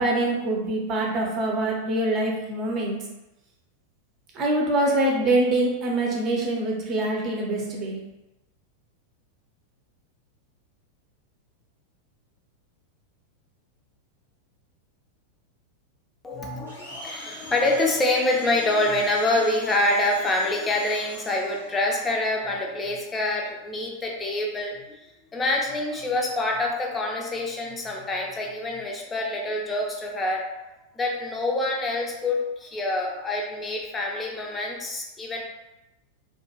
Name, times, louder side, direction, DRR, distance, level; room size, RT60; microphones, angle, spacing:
voice 1, 0.0-3.0 4.3-8.0, right 1 dB, 35° right, -2 dB, 0.7 m, -24 dB
voice 2, 16.2-24.7 25.3-30.4 31.0-35.4, left 2 dB, 15° left, 0 dB, 0.5 m, -26 dB
Domestic sounds home sounds, 16.7-21.7, equal, 80° left, 0.9 m, -43 dB
2.5 x 2.3 x 2.9 m, 0.97 s
figure-of-eight pair, 90°, 0 cm